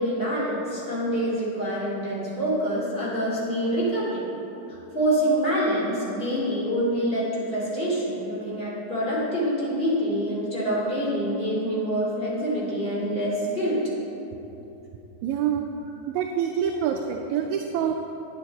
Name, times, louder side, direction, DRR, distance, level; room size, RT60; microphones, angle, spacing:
voice 1, 0.0-4.2 4.9-13.8, equal, 20° left, -7 dB, 2.6 m, -26 dB
voice 2, 15.2-15.7 16.1-17.9, right 8 dB, 80° right, 3 dB, 1.8 m, -26 dB
11.0 x 9.8 x 4.1 m, 3.0 s
omnidirectional pair, 3.6 m